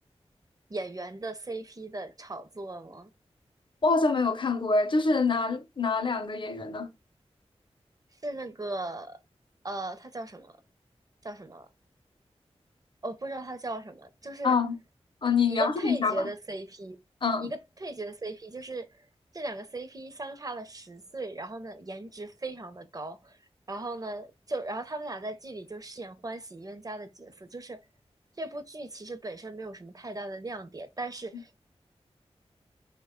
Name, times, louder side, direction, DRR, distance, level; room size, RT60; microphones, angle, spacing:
voice 1, 0.7-3.1 8.2-9.2 9.6-10.6 11.2-11.7 13.0-14.6 15.5-17.0 17.4-18.9 19.3-23.4 23.7-27.8 28.4-31.6, right 2 dB, 35° right, 0.5 m, -37 dB
voice 2, 3.8-6.9 14.4-14.8 15.2-16.3 17.2-17.5, left 4 dB, 45° left, 0.6 m, -26 dB
3.1 x 2.2 x 3.6 m
wide cardioid pair, 60°, 11 cm